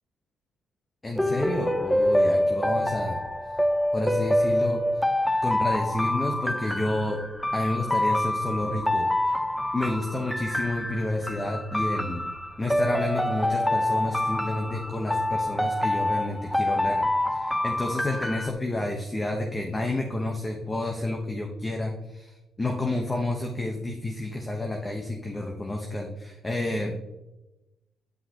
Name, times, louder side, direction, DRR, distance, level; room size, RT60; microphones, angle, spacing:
voice 1, 1.0-3.2 3.9-5.1 5.4-7.2 7.5-9.4 9.7-12.3 12.6-17.0 17.3-26.9, left 2 dB, 20° left, 2 dB, 0.9 m, -30 dB
sound 1, 1.2-18.5, left 1 dB, 5° left, 0.5 m, -26 dB
9.5 x 5.8 x 2.9 m, 1.0 s
cardioid pair, 90°, 0 cm